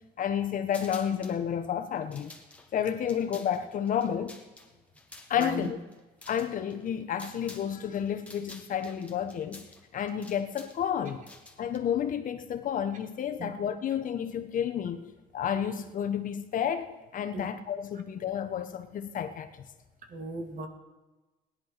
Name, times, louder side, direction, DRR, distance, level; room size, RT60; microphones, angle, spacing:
voice 1, 0.2-2.3 2.7-4.4 5.3-5.8 6.3-9.6 9.9-11.2 11.6-15.0 15.3-19.6, left 8 dB, 50° left, 8 dB, 1.2 m, -31 dB
sound 1, 0.7-1.4 1.9-7.7 8.0-11.8, left 2 dB, 10° left, 1.8 m, -50 dB
voice 2, 5.4-5.7 13.3-13.5 17.3-17.5 20.1-20.7, right 2 dB, 50° right, 5 dB, 2.3 m, -37 dB
17.0 x 11.0 x 6.0 m, 1.2 s
cardioid pair, 110°, 17 cm